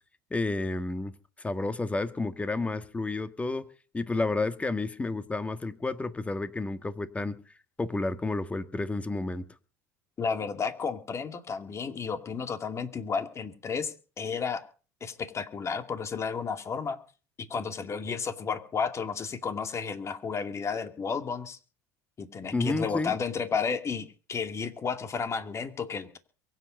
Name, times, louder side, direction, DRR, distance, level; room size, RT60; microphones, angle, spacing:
voice 1, 0.3-1.1 1.4-3.7 3.9-7.4 7.8-9.4 22.5-23.1, left 3 dB, 15° left, 1.5 m, -30 dB
voice 2, 10.2-14.6 15.0-17.0 17.4-21.6 22.2-26.2, left 5 dB, 30° left, 2.4 m, -32 dB
23.5 x 8.1 x 5.3 m
hypercardioid pair, 90°, 9 cm